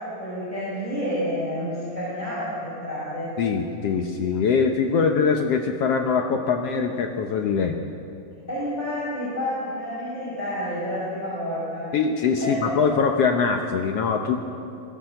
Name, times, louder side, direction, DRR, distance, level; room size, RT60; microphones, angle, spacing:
voice 1, 0.0-3.3 8.5-11.9 12.4-12.7, equal, 10° left, -9 dB, 6.2 m, -29 dB
voice 2, 3.4-7.8 11.9-14.4, left 5 dB, 80° left, 4 dB, 1.4 m, -23 dB
21.5 x 16.5 x 7.9 m, 2.7 s
omnidirectional pair, 4.2 m